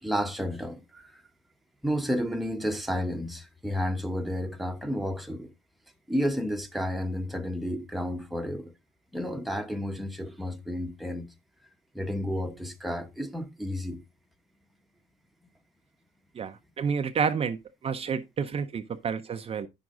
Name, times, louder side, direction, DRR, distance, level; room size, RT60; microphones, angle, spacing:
voice 1, 0.0-1.2 1.8-5.5 6.1-8.7 9.1-11.3 11.9-14.0, equal, ahead, 1.1 m, -31 dB
voice 2, 16.4-17.6 17.8-19.7, right 6 dB, 35° right, 0.6 m, -29 dB
9.9 x 6.1 x 3.8 m
cardioid pair, 110°, 17 cm